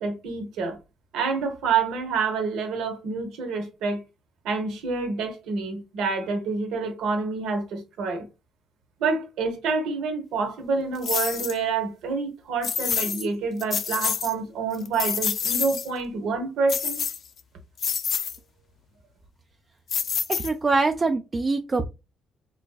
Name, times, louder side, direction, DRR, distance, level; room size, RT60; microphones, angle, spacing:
voice 1, 0.0-0.8 1.1-4.0 4.4-8.2 9.0-17.0, right 4 dB, 85° right, 0.9 m, -27 dB
sound 1, 11.0-11.6 12.6-13.3 13.6-14.3 14.7-15.9 16.7-17.4 17.8-18.4 19.9-20.8, left 7 dB, 50° left, 0.4 m, -27 dB
voice 2, 20.3-21.9, right 3 dB, 25° right, 0.3 m, -24 dB
3.9 x 2.6 x 2.3 m
cardioid pair, 110°, 0 cm